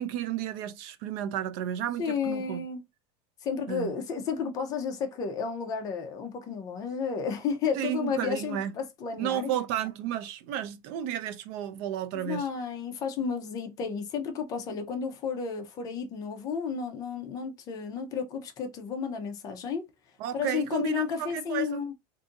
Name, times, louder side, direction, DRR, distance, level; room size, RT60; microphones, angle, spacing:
voice 1, 0.0-2.6 3.7-3.9 7.8-8.7 9.2-12.5 20.2-21.8, right 10 dB, 45° right, 0.4 m, -32 dB
voice 2, 2.0-2.8 3.4-9.5 12.1-19.9 20.3-21.9, left 6 dB, 25° left, 0.6 m, -32 dB
2.6 x 2.5 x 3.7 m
supercardioid pair, 180°, 14 cm